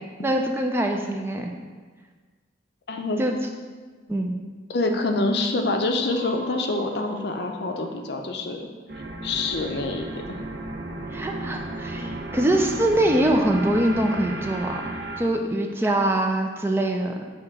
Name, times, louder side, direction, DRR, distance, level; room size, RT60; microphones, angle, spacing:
voice 1, 0.2-1.5 3.2-3.4 4.1-4.4 11.1-17.1, right 1 dB, 15° right, 2 dB, 0.4 m, -23 dB
voice 2, 2.9-3.2 4.7-8.7 9.2-10.4, left 2 dB, 60° left, 4 dB, 0.6 m, -26 dB
sound 1, 6.0-8.5 8.9-15.2, right 1 dB, 60° right, 0.6 m, -35 dB
7.1 x 2.9 x 4.7 m, 1.4 s
head